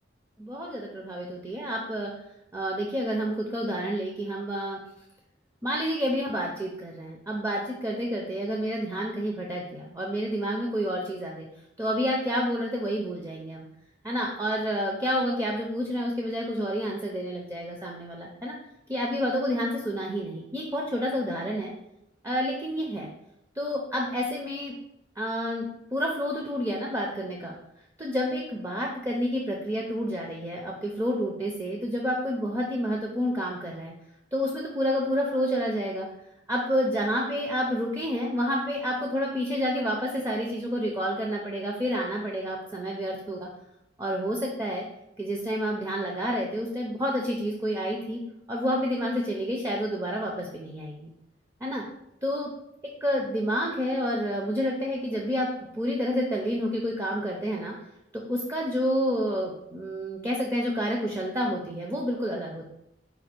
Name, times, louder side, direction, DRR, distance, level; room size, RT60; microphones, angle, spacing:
voice 1, 0.4-2.1 2.5-4.8 5.6-11.5 11.8-13.7 14.0-18.6 18.9-21.7 22.2-23.1 23.6-24.8 25.2-27.5 28.0-33.9 34.3-36.1 36.5-43.5 44.0-44.8 45.2-48.2 48.5-51.1 51.6-51.8 52.2-52.5 53.0-55.5 55.7-57.7 58.1-62.7, equal, 15° right, -1 dB, 0.5 m, -29 dB
5.2 x 2.3 x 4.3 m, 0.82 s
head